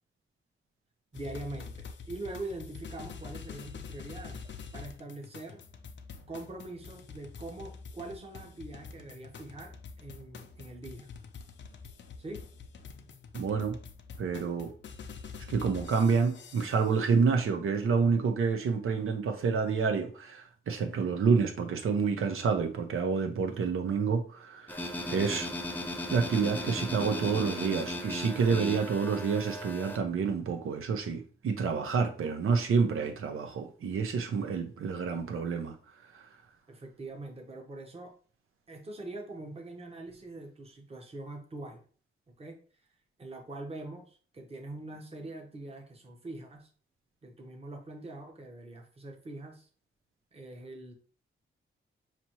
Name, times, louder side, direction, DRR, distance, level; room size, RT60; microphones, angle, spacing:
sound 1, 1.1-17.1, left 5 dB, 60° left, 0.5 m, -46 dB
voice 1, 1.1-5.6 6.3-11.1 12.2-12.5 20.8-21.2 34.4-34.5 36.7-38.1 38.7-41.8 42.3-42.6 43.2-46.7 47.2-49.7 50.3-50.9, right 2 dB, 30° right, 0.9 m, -43 dB
voice 2, 13.3-13.8 14.2-14.7 15.5-24.8 25.1-25.7 26.1-35.8 36.1-36.3, right 5 dB, 85° right, 0.7 m, -28 dB
sound 2, 24.7-30.0, left 1 dB, 10° left, 0.5 m, -37 dB
5.8 x 2.8 x 2.9 m
wide cardioid pair, 160°, 21 cm